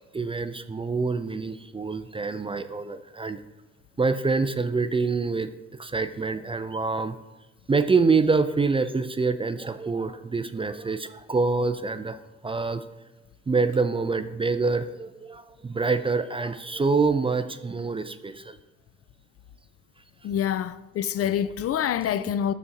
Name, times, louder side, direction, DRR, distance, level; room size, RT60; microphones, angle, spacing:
voice 1, 0.1-3.4 4.0-7.2 7.7-12.2 12.4-12.8 13.5-18.6, right 4 dB, 20° right, 0.4 m, -26 dB
voice 2, 20.2-22.5, left 9 dB, 50° left, 0.4 m, -26 dB
12.5 x 4.1 x 3.9 m
cardioid pair, 90°, 30 cm